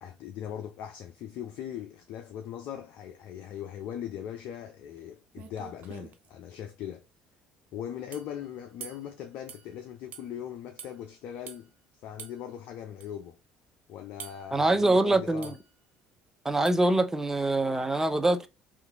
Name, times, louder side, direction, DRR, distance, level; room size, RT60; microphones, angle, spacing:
voice 1, 0.0-7.0 7.7-11.7 12.0-13.4 13.9-15.6, left 10 dB, 60° left, 0.5 m, -40 dB
sound 1, 5.0-5.1 5.3-6.3 8.1-8.3 8.8-9.1 9.5-9.7 10.1-10.3 10.8-10.9 11.5-11.6 12.2-12.4 13.0-13.1 14.2-14.5 15.4-15.7 16.6-16.9, right 8 dB, 55° right, 0.6 m, -45 dB
voice 2, 14.5-15.5 16.4-18.5, right 2 dB, 15° right, 0.5 m, -24 dB
2.8 x 2.5 x 3.4 m
hypercardioid pair, 65°, 3 cm